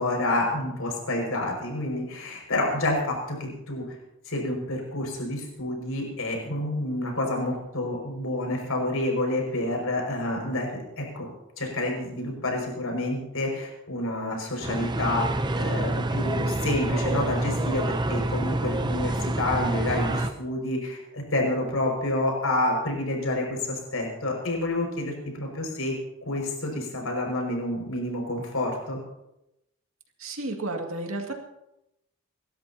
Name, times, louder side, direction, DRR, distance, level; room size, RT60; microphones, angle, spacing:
voice 1, 0.0-4.0 4.2-11.3 11.6-25.9 26.2-29.0, left 1 dB, 80° left, 0 dB, 5.9 m, -29 dB
sound 1, 14.6-20.3, right 1 dB, 20° right, 0.6 m, -27 dB
voice 2, 30.2-31.3, right 2 dB, 70° right, 2 dB, 2.2 m, -32 dB
29.0 x 13.0 x 2.9 m, 0.89 s
head